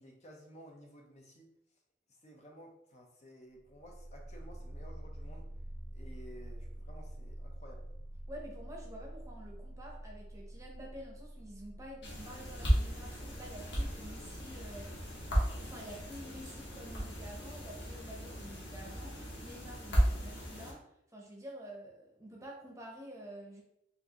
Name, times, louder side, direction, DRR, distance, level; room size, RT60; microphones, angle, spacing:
voice 1, 0.0-1.5 2.2-5.5 5.9-7.9, equal, 40° left, 1 dB, 0.7 m, -54 dB
sound 1, 3.5-17.0, right 1 dB, 70° right, 0.5 m, -48 dB
voice 2, 8.3-15.1 15.6-20.9 21.1-23.6, equal, 20° right, -1 dB, 0.8 m, -49 dB
sound 2, 12.0-20.7, equal, 70° left, 1.3 m, -35 dB
4.5 x 2.6 x 2.9 m, 0.78 s
head